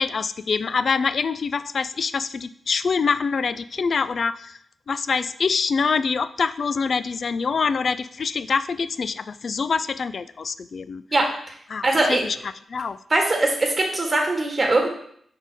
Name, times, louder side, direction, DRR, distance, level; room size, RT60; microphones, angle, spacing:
voice 1, 0.0-4.6 4.9-11.0 11.7-11.8 12.1-13.0, left 5 dB, 60° left, 15 dB, 0.3 m, -25 dB
voice 2, 11.8-12.2 13.1-14.9, right 2 dB, 40° right, 1 dB, 1.7 m, -21 dB
5.1 x 4.0 x 5.2 m, 0.64 s
cardioid pair, 60°, 0 cm